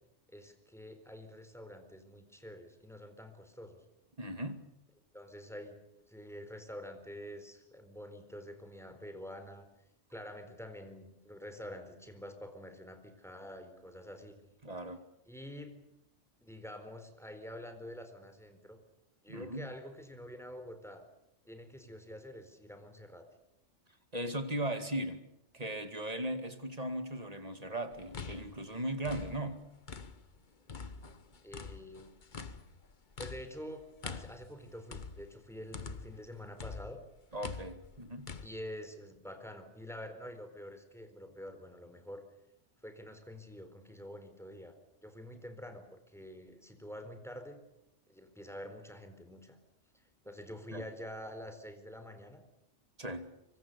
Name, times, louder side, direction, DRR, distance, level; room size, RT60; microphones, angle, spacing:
voice 1, 0.3-3.8 5.1-9.7 10.1-14.6 15.3-15.7 16.4-18.8 19.2-21.0 21.4-23.3 31.4-32.1 33.2-37.0 38.4-42.2 42.8-44.8 45.0-47.6 48.1-49.6 49.9-52.4, equal, ahead, 7 dB, 4.2 m, -47 dB
voice 2, 4.2-4.6 14.6-15.0 19.3-19.7 24.1-25.3 25.5-29.6 37.3-38.3 50.7-50.8 53.0-53.3, right 1 dB, 30° right, 8 dB, 2.4 m, -38 dB
sound 1, 27.9-30.4 30.7-36.3 36.6-38.5, left 5 dB, 40° left, 1.3 m, -45 dB
25.0 x 24.5 x 7.0 m, 0.87 s
omnidirectional pair, 1.2 m